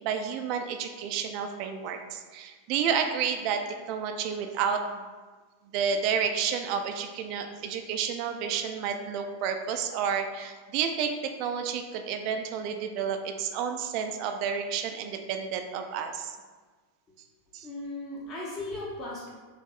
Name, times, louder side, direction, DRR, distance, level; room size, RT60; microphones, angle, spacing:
voice 1, 0.0-3.6 3.9-4.8 5.7-16.4 17.5-17.7, right 7 dB, 45° right, 6 dB, 0.4 m, -30 dB
voice 2, 17.6-19.3, left 2 dB, 35° left, -5 dB, 0.9 m, -37 dB
6.5 x 2.6 x 2.5 m, 1.4 s
figure-of-eight pair, 90°, 0 cm